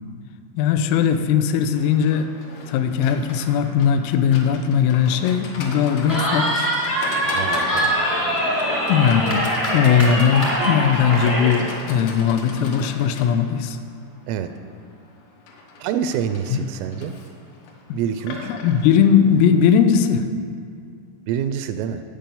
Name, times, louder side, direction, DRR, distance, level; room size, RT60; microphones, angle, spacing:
voice 1, 0.6-2.3 2.7-6.7 8.9-13.8 16.5-16.6 17.9-18.0 18.4-20.3, left 7 dB, 85° left, 9 dB, 3.3 m, -19 dB
Livestock farm animals working animals, 1.8-19.8, left 2 dB, 70° left, 3.2 m, -37 dB
Cheering, 6.1-11.6, equal, 15° left, 0.7 m, -23 dB
voice 2, 7.3-7.9 14.3-14.5 15.8-17.1 17.9-18.5 21.3-22.0, right 8 dB, 85° right, 9 dB, 3.1 m, -26 dB
9.2 x 8.9 x 6.9 m, 2.3 s
omnidirectional pair, 5.8 m